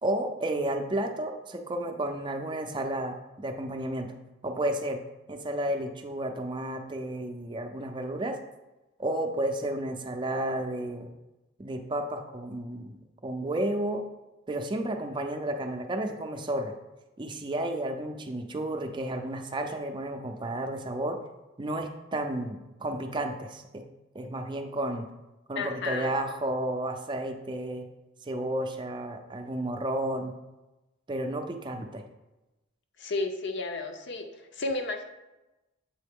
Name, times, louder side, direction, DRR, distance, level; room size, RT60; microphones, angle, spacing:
voice 1, 0.0-4.1 4.4-5.0 5.3-8.4 9.0-11.1 11.6-13.0 13.2-14.0 14.5-16.7 17.2-21.2 21.6-23.8 24.1-25.1 25.5-27.9 28.3-30.3 31.1-32.0, right 1 dB, 25° right, 5 dB, 0.5 m, -32 dB
voice 2, 25.6-26.1 33.0-35.0, left 3 dB, 60° left, 5 dB, 0.6 m, -32 dB
7.5 x 3.7 x 3.6 m, 1.0 s
head